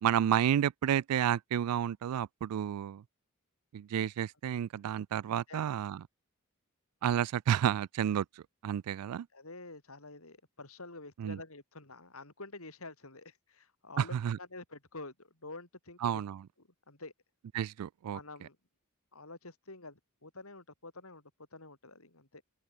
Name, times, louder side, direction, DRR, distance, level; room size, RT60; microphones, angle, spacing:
voice 1, 0.0-3.0 3.7-6.0 7.0-9.3 11.2-11.4 14.0-14.4 16.0-16.4 17.5-18.2, right 9 dB, 85° right, 0.3 m, -31 dB
voice 2, 5.5-5.8 9.3-16.2 16.9-17.1 18.1-18.6 19.1-22.4, left 2 dB, 70° left, 5.3 m, -48 dB
open air
head